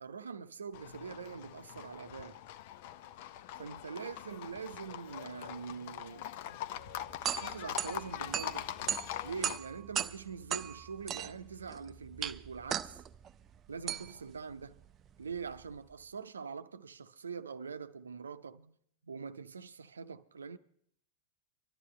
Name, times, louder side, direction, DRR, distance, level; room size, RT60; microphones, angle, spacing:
voice 1, 0.0-2.4 3.6-6.6 7.3-8.7 9.2-13.0 13.7-14.8 15.2-18.8 19.0-20.6, right 5 dB, 70° right, 0.6 m, -44 dB
Livestock farm animals working animals, 0.7-9.6, left 12 dB, 50° left, 0.5 m, -43 dB
sound 1, 6.8-15.9, right 9 dB, 30° right, 0.4 m, -39 dB
24.0 x 12.5 x 3.2 m
figure-of-eight pair, 90°, 0 cm